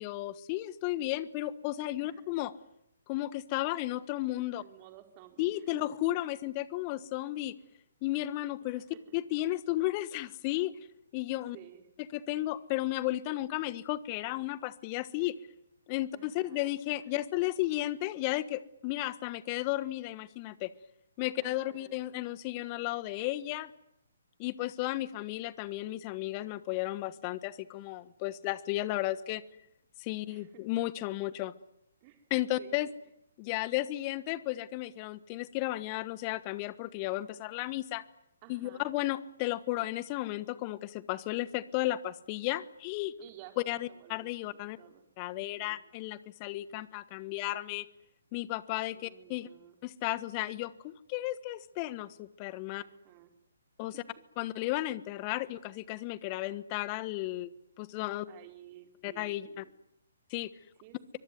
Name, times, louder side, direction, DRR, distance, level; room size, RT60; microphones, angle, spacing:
voice 1, 0.0-2.5 3.1-4.6 5.4-7.5 8.0-8.8 9.1-10.7 11.1-11.6 12.1-15.3 15.9-20.7 21.2-23.7 24.4-29.4 30.0-31.5 32.3-32.9 33.4-38.0 38.5-43.1 43.6-44.8 45.2-47.9 48.3-49.5 49.8-52.8 53.8-53.9 54.4-57.5 57.8-58.3 59.0-59.6 60.3-60.5, left 16 dB, 30° left, 17 dB, 1.3 m, -34 dB
voice 2, 4.6-5.8 7.0-7.1 8.6-9.1 11.5-11.9 16.1-16.7 21.4-22.0 30.2-30.5 32.0-32.3 32.6-32.8 38.4-38.9 43.2-45.1 45.3-45.8 48.9-49.8 52.8-53.3 53.8-54.0 54.4-54.6 58.3-59.7 60.8-61.0, right 14 dB, 30° right, 6 dB, 4.5 m, -54 dB
24.5 x 22.0 x 9.4 m, 0.79 s
figure-of-eight pair, 135°, 0 cm